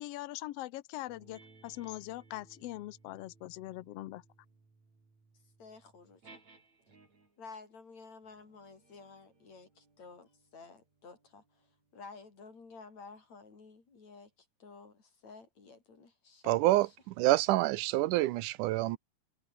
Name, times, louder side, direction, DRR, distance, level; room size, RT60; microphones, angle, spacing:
voice 1, 0.0-4.2, left 16 dB, 90° left, 1.3 m, -42 dB
sound 1, 1.1-7.5 8.2-13.1, right 3 dB, 55° right, 8.0 m, -63 dB
voice 2, 5.6-6.4 7.4-11.7 11.9-17.0, left 4 dB, 55° left, 6.5 m, -52 dB
voice 3, 16.5-19.0, right 17 dB, 85° right, 2.1 m, -27 dB
omnidirectional pair, 3.7 m